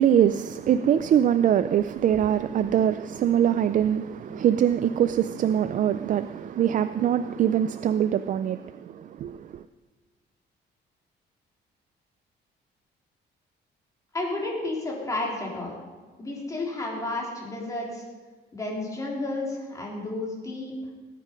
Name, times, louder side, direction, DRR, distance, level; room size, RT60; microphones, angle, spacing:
voice 1, 0.0-9.6, right 9 dB, 45° right, 0.4 m, -23 dB
voice 2, 14.1-15.8 16.2-18.0 18.5-20.8, left 2 dB, 15° left, 3.6 m, -31 dB
18.5 x 9.8 x 5.2 m
cardioid pair, 155°, 18 cm